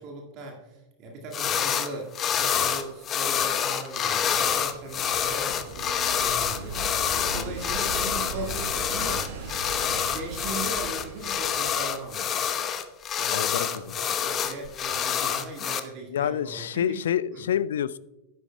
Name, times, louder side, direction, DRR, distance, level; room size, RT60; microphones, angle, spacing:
voice 1, 0.0-9.3 9.7-12.5 13.2-16.6 17.3-17.4, right 2 dB, 40° right, 0 dB, 1.9 m, -39 dB
sound 1, 1.3-1.9 2.1-15.8, left 8 dB, 30° left, 0.8 m, -27 dB
sound 2, 4.0-12.5 14.6-14.7, right 5 dB, 55° right, 1.3 m, -39 dB
voice 2, 13.3-13.9 16.1-18.0, left 9 dB, 60° left, 18 dB, 0.3 m, -28 dB
11.5 x 10.5 x 2.2 m, 1.0 s
figure-of-eight pair, 90°, 0 cm